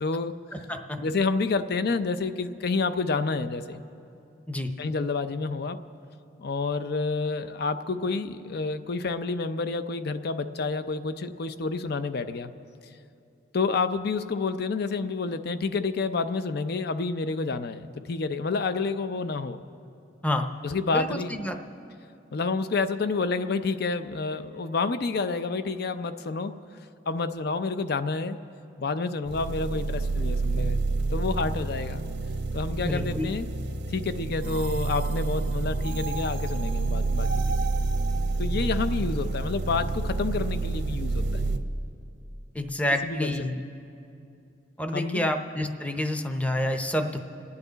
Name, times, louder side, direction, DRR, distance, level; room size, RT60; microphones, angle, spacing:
voice 1, 0.0-0.3 1.0-3.8 4.8-5.8 6.4-12.5 13.5-19.6 20.6-21.4 22.3-26.6 27.1-28.4 28.8-30.8 31.1-32.0 32.5-33.5 33.9-37.7 38.4-41.4 43.0-43.7 44.9-45.3, left 4 dB, 60° left, 11 dB, 0.5 m, -29 dB
voice 2, 0.5-1.0 4.5-4.7 20.2-20.5 20.9-21.6 32.8-33.3 42.5-43.6 44.8-47.3, left 1 dB, 10° left, 6 dB, 0.6 m, -28 dB
sound 1, 29.3-41.6, right 3 dB, 85° right, 0.8 m, -28 dB
28.5 x 9.7 x 4.0 m, 2.7 s
head